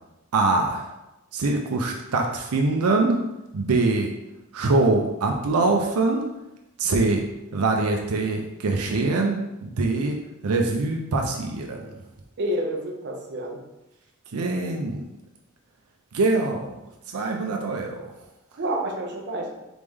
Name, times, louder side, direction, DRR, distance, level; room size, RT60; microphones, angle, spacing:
voice 1, 0.3-0.9 1.3-3.2 3.5-4.1 4.5-6.3 6.8-7.2 7.5-10.2 10.4-11.9 14.3-15.0 16.1-16.7 17.1-18.1, right 3 dB, 85° right, 2 dB, 0.5 m, -23 dB
voice 2, 12.4-13.6 18.6-19.5, right 1 dB, 50° right, 1 dB, 0.7 m, -28 dB
4.0 x 3.3 x 3.6 m, 0.94 s
head